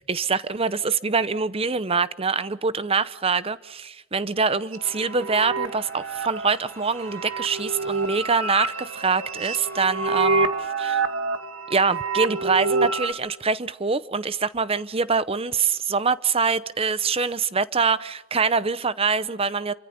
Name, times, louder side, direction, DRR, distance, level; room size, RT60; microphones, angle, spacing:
voice 1, 0.1-11.0 11.7-19.7, right 5 dB, 25° right, 0.8 m, -24 dB
sound 1, 4.7-13.1, right 3 dB, 80° right, 2.1 m, -27 dB
sound 2, 4.8-10.4, left 2 dB, 15° left, 4.1 m, -50 dB
28.5 x 24.5 x 6.8 m
head